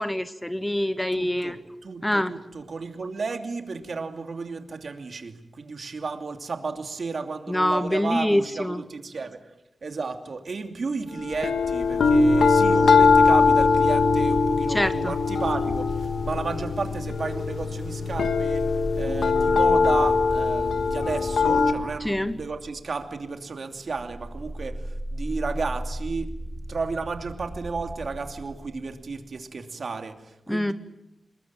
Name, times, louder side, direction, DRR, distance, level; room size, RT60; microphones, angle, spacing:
voice 1, 0.0-1.6 2.0-2.3 7.5-8.8 14.7-15.1 22.0-22.4 30.5-30.7, left 1 dB, 10° left, 12 dB, 1.0 m, -25 dB
voice 2, 1.1-1.6 1.8-9.5 9.8-26.4 26.7-30.7, right 4 dB, 55° right, 5 dB, 2.8 m, -33 dB
sound 1, 11.3-21.7, left 4 dB, 85° left, 2.2 m, -21 dB
sound 2, 12.0-17.2 17.7-29.2, right 1 dB, 30° right, 3.9 m, -37 dB
27.5 x 22.0 x 9.0 m, 0.87 s
wide cardioid pair, 135°, 0 cm